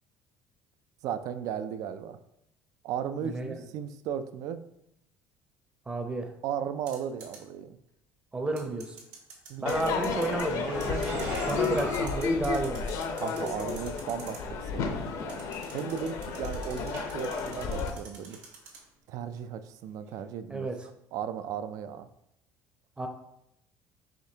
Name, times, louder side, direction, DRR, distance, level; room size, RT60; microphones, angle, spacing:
voice 1, 1.0-2.2 2.8-4.6 6.4-7.8 9.5-9.9 13.1-18.4 19.1-20.7 21.1-22.1, right 8 dB, 65° right, 11 dB, 0.4 m, -36 dB
voice 2, 3.2-3.5 5.9-6.3 8.3-9.0 9.6-12.9 20.5-20.8 23.0-23.1, right 2 dB, 15° right, 4 dB, 0.6 m, -32 dB
sound 1, 6.9-7.4 8.6-10.5 10.8-14.4 15.3-18.8, right 5 dB, 80° right, 1.5 m, -47 dB
Crowd / Fireworks, 9.7-17.9, left 5 dB, 60° left, 0.6 m, -32 dB
sound 2, 10.5-13.1 13.9-14.0 14.9-15.0 15.2-15.5 16.1-17.5 17.9-18.5 18.7-18.8 20.1-20.2, right 3 dB, 45° right, 1.2 m, -41 dB
5.0 x 3.5 x 2.8 m, 0.80 s
cardioid pair, 125°, 6 cm